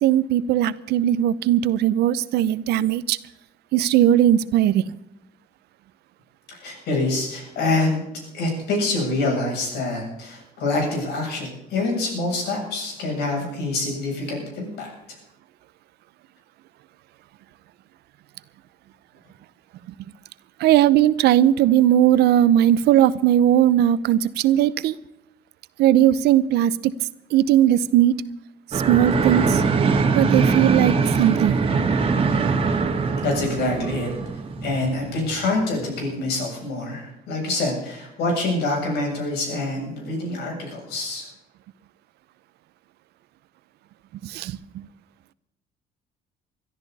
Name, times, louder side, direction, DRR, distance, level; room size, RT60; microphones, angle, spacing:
voice 1, 0.0-3.2 3.7-4.8 20.6-24.9 25.8-26.9 27.3-28.2 28.9-29.6 30.1-31.6 44.2-44.6, right 11 dB, 75° right, 17 dB, 0.7 m, -18 dB
voice 2, 6.5-8.0 8.3-14.9 33.2-34.1 34.6-41.3, left 2 dB, 80° left, 0 dB, 7.9 m, -26 dB
whistling wind polished, 28.7-35.8, right 4 dB, 35° right, 2.1 m, -22 dB
21.5 x 13.5 x 4.1 m, 0.86 s
cardioid pair, 110°, 17 cm